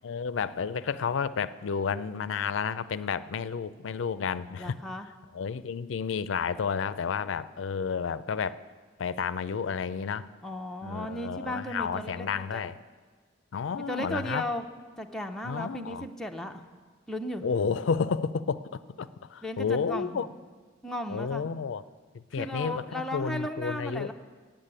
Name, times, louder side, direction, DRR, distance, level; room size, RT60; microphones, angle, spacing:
voice 1, 0.0-4.8 5.3-8.6 9.0-10.3 10.8-12.7 13.5-14.4 15.4-16.1 17.4-20.3 21.1-21.8 22.1-24.1, left 6 dB, 80° left, 15 dB, 0.4 m, -31 dB
voice 2, 4.6-5.1 10.4-12.7 13.9-14.7 15.0-16.6 17.1-17.4 19.4-20.3 20.8-21.4 22.4-24.1, left 1 dB, ahead, 3 dB, 0.6 m, -35 dB
9.0 x 8.3 x 8.8 m, 1.5 s
head